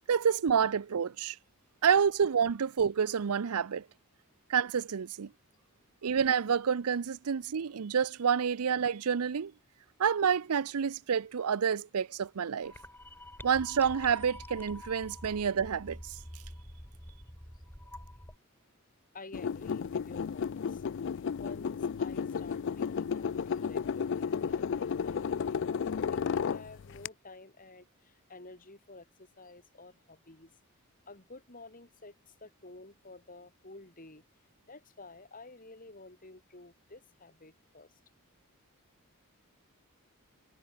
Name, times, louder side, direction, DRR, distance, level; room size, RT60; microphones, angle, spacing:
voice 1, 0.1-1.4 1.8-3.8 4.5-5.3 6.0-9.5 10.0-12.7 13.4-16.0, right 7 dB, 80° right, 0.5 m, -28 dB
sound 1, 12.6-18.4, left 1 dB, 10° left, 3.5 m, -47 dB
voice 2, 19.1-20.8 21.3-30.5 31.1-34.2 34.7-37.9, left 2 dB, 40° left, 5.1 m, -51 dB
sound 2, 19.3-27.1, left 6 dB, 55° left, 0.4 m, -33 dB
head